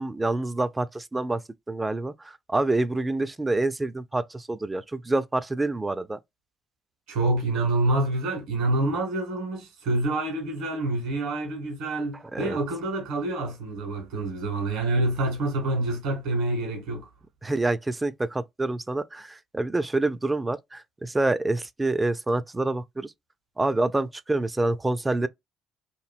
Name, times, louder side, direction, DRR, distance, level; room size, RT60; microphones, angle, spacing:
voice 1, 0.0-1.4 1.7-2.1 2.5-6.2 12.3-12.6 17.4-23.1 23.6-25.3, right 2 dB, 20° right, 0.3 m, -27 dB
voice 2, 7.1-17.1, right 2 dB, 70° right, 1.6 m, -27 dB
3.1 x 2.6 x 2.4 m
figure-of-eight pair, 45°, 0 cm